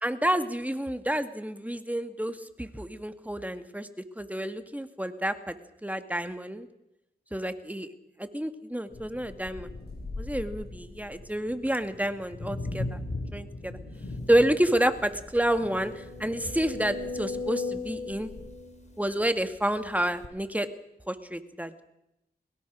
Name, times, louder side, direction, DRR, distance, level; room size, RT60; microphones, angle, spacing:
voice 1, 0.0-3.9 4.2-5.6 5.8-6.7 7.3-7.9 8.2-9.7 10.2-13.0 13.3-13.8 14.3-15.9 16.2-18.3 19.0-20.7 21.1-21.8, right 1 dB, 10° right, 8 dB, 2.3 m, -29 dB
sound 1, 8.9-18.5, left 2 dB, 60° left, 5.7 m, -40 dB
sound 2, 14.2-14.3 14.7-14.8 15.3-19.6 20.2-20.3, left 4 dB, 40° left, 4.1 m, -37 dB
21.5 x 21.5 x 6.4 m, 0.87 s
cardioid pair, 40°, 18 cm